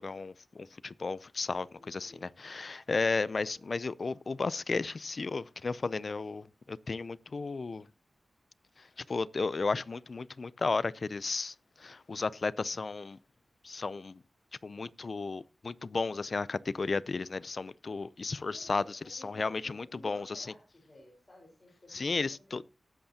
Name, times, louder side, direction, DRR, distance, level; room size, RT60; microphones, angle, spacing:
voice 1, 0.0-7.9 8.8-13.2 13.6-14.2 14.6-20.5 21.9-22.6, left 4 dB, 55° left, 0.5 m, -34 dB
voice 2, 1.7-2.3 3.3-3.6 18.5-22.7, left 1 dB, 30° left, 4.3 m, -56 dB
18.5 x 8.0 x 2.8 m
wide cardioid pair, 75°, 0 cm